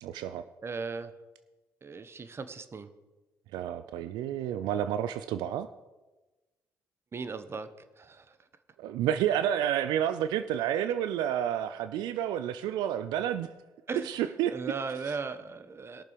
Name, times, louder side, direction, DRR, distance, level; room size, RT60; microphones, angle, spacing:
voice 1, 0.0-0.4 3.5-5.7 8.8-13.5 14.1-14.6, right 10 dB, 80° right, 12 dB, 0.4 m, -30 dB
voice 2, 0.6-1.1 1.8-2.9 7.1-7.7 8.0-8.4 13.9-16.0, right 4 dB, 35° right, 12 dB, 1.0 m, -37 dB
18.0 x 6.7 x 5.1 m, 1.1 s
supercardioid pair, 70°, 7 cm